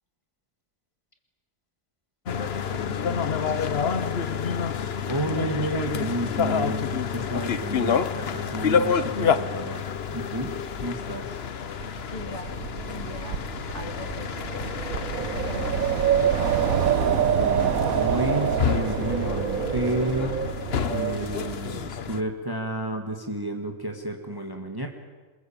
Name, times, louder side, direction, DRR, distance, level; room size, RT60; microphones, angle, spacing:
sound 1, 2.3-22.2, left 7 dB, 50° left, 1.1 m, -29 dB
voice 1, 2.4-4.2 12.1-13.5 13.7-14.7 15.3-16.4, left 2 dB, 20° left, 3 dB, 3.1 m, -41 dB
voice 2, 5.1-9.8 10.1-11.4 17.2-20.4 20.9-24.9, right 1 dB, 15° right, 3 dB, 1.9 m, -31 dB
Wind, 11.8-21.9, right 9 dB, 80° right, 1.5 m, -26 dB
27.0 x 21.0 x 8.9 m, 1.4 s
omnidirectional pair, 1.5 m